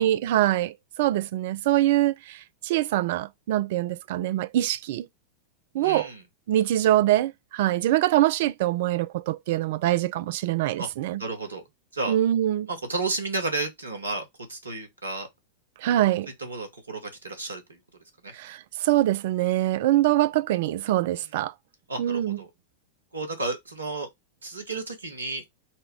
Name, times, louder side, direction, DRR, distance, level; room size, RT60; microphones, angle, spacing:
voice 1, 0.0-5.1 5.7-6.1 6.5-11.2 12.1-12.7 15.8-16.3 18.3-21.5 22.0-22.4, right 14 dB, 50° right, 0.3 m, -24 dB
voice 2, 5.8-6.2 10.8-10.9 11.2-11.6 11.9-12.2 12.7-15.3 16.4-17.8 18.2-18.3 21.9-22.5 23.1-24.1 24.4-25.4, right 3 dB, 75° right, 1.1 m, -32 dB
4.2 x 2.2 x 4.6 m
figure-of-eight pair, 90°, 0 cm